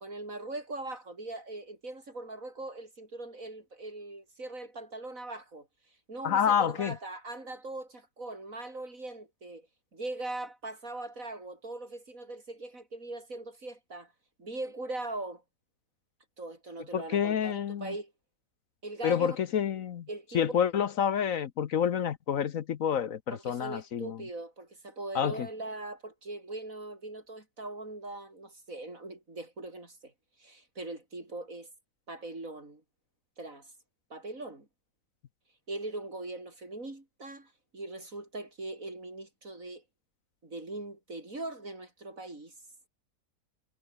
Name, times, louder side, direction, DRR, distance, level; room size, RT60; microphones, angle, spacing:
voice 1, 0.0-5.7 6.1-9.7 9.9-14.1 14.4-15.4 16.4-18.1 18.8-19.4 20.1-20.4 23.3-30.1 30.4-31.7 32.1-32.8 33.4-33.7 34.1-34.7 35.7-39.8 40.4-42.5, right 2 dB, 55° right, 5.9 m, -41 dB
voice 2, 6.2-7.0 16.9-17.9 19.0-20.1 20.3-24.2 25.1-25.5, left 8 dB, 60° left, 1.2 m, -28 dB
omnidirectional pair, 1.7 m